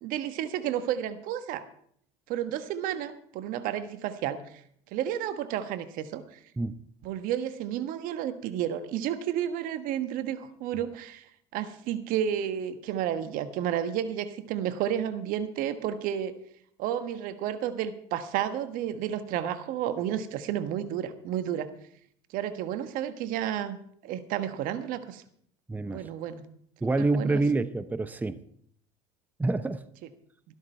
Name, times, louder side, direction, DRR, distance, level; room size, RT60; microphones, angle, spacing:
voice 1, 0.0-1.7 2.3-4.4 4.9-6.4 7.0-11.3 11.5-16.3 16.8-21.7 22.3-25.2 25.9-26.4 27.0-27.4 30.0-30.1, right 10 dB, 60° right, 10 dB, 1.4 m, -31 dB
voice 2, 25.7-26.0 26.8-28.4 29.4-29.8, right 3 dB, 10° right, 13 dB, 0.8 m, -27 dB
13.5 x 12.5 x 4.5 m, 0.65 s
hypercardioid pair, 80°, 16 cm